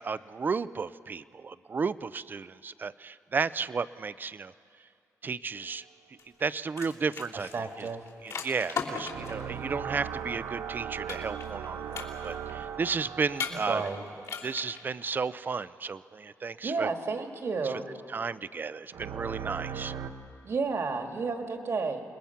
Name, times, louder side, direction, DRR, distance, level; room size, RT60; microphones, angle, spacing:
voice 1, 0.0-4.5 5.2-5.8 6.4-7.9 8.2-13.8 14.4-16.9 17.6-17.7 18.1-19.9, right 5 dB, 35° right, 16 dB, 0.5 m, -33 dB
sound 1, 6.2-9.4 11.1-11.7 11.9-12.5 13.4-14.0 14.2-14.8, left 5 dB, 70° left, 3.1 m, -36 dB
voice 2, 7.5-8.0 13.7-14.1 16.6-17.9 20.4-22.0, right 4 dB, 50° right, 5 dB, 1.8 m, -31 dB
sound 2, 9.0-14.8 18.9-20.1, right 8 dB, 85° right, 1.1 m, -38 dB
28.5 x 21.0 x 5.8 m, 2.4 s
cardioid pair, 115°, 6 cm